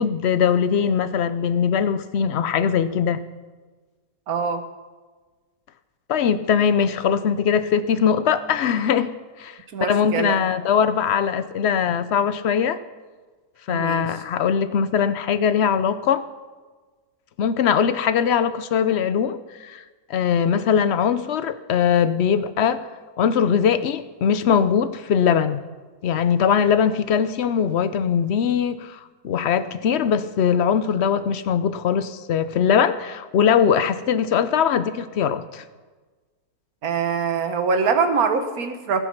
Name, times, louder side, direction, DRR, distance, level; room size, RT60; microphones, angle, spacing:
voice 1, 0.0-3.2 6.1-9.1 9.4-12.8 13.7-16.2 17.4-19.8 20.1-22.9 23.2-25.6 26.0-35.6, left 7 dB, 65° left, 12 dB, 0.7 m, -21 dB
voice 2, 4.3-4.6 9.7-10.4 13.7-14.1 20.4-20.7 36.8-39.0, right 5 dB, 65° right, 7 dB, 1.6 m, -24 dB
18.5 x 8.1 x 5.9 m, 1.3 s
omnidirectional pair, 1.7 m